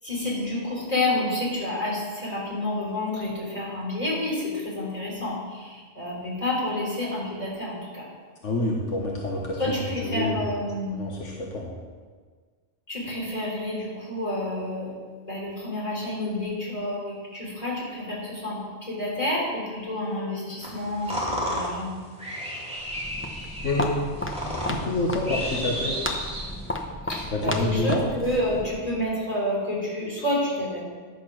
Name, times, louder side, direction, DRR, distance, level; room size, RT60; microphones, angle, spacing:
voice 1, 0.0-8.1 9.6-11.0 12.9-15.0 15.3-22.0 27.0-30.8, left 1 dB, 30° left, -5 dB, 3.9 m, -29 dB
voice 2, 8.4-10.4 10.9-11.8 23.6-24.0 24.7-26.0 27.3-28.0, left 2 dB, 80° left, -2 dB, 1.6 m, -27 dB
sound 1, 20.6-26.8, equal, 5° right, 2.5 m, -33 dB
Walk footsteps, 22.8-28.9, left 1 dB, 10° left, 0.8 m, -33 dB
10.5 x 7.5 x 6.1 m, 1.5 s
omnidirectional pair, 1.2 m